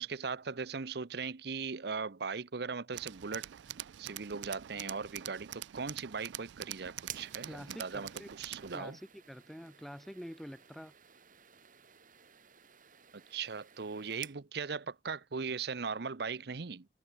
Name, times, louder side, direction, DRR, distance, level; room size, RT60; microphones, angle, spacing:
voice 1, 0.0-3.5 4.0-9.0 13.1-16.9, right 5 dB, 65° right, 0.8 m, -39 dB
Tools, 2.9-8.8, right 13 dB, 85° right, 0.4 m, -45 dB
sound 1, 7.0-14.4, right 10 dB, 50° right, 2.8 m, -54 dB
voice 2, 7.5-8.3 8.7-9.0 9.3-10.9, equal, ahead, 0.6 m, -46 dB
head